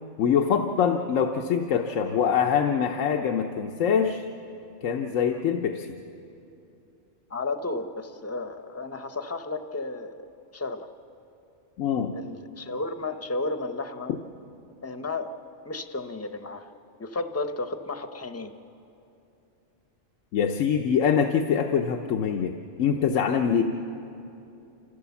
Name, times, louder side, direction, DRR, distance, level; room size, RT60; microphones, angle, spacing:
voice 1, 0.2-4.2 4.8-5.9 11.8-12.2 20.3-23.6, left 7 dB, 90° left, 4 dB, 1.2 m, -24 dB
voice 2, 5.3-5.6 7.3-10.9 12.1-14.1 14.8-15.4 15.6-16.7 17.0-18.5, left 3 dB, 15° left, 8 dB, 0.6 m, -33 dB
27.0 x 16.0 x 7.1 m, 2.8 s
omnidirectional pair, 1.3 m